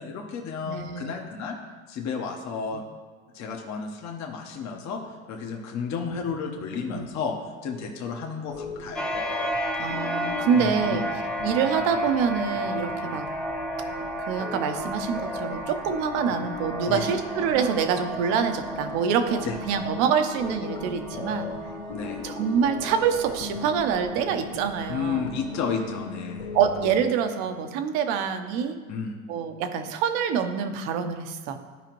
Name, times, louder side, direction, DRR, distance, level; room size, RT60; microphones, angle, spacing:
voice 1, 0.0-1.6 1.9-2.8 3.3-5.0 5.3-7.3 7.6-9.1 10.5-11.0 16.9-17.2 19.4-19.6 21.9-22.3 24.9-26.5 28.9-29.2, left 6 dB, 40° left, 2 dB, 1.1 m, -32 dB
voice 2, 0.6-1.2 2.7-2.8 6.1-6.2 6.9-7.1 9.8-11.0 11.4-13.3 14.3-21.5 22.2-25.3 26.5-28.8 29.3-31.6, right 7 dB, 65° right, 7 dB, 0.9 m, -26 dB
sound 1, 8.5-27.0, left 3 dB, 55° left, 1.4 m, -39 dB
sound 2, 9.0-26.2, equal, ahead, 0.9 m, -34 dB
12.5 x 4.9 x 3.1 m, 1.5 s
hypercardioid pair, 95°, 43 cm